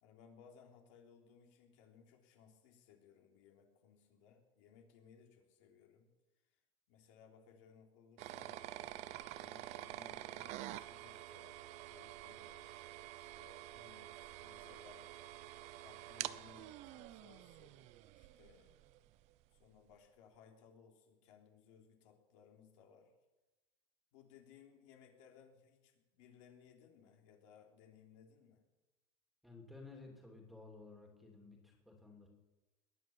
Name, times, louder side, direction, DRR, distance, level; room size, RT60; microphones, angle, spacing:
voice 1, 0.0-6.1 6.5-6.6 6.9-8.6 9.4-15.3 15.8-17.9 18.1-18.7 19.5-23.1 24.1-28.6, left 7 dB, 70° left, 2 dB, 3.4 m, -63 dB
sound 1, 8.2-19.0, right 15 dB, 45° right, 0.6 m, -48 dB
voice 2, 29.4-32.3, left 3 dB, ahead, 2 dB, 2.7 m, -55 dB
21.0 x 9.5 x 7.2 m, 1.1 s
cardioid pair, 170°, 16 cm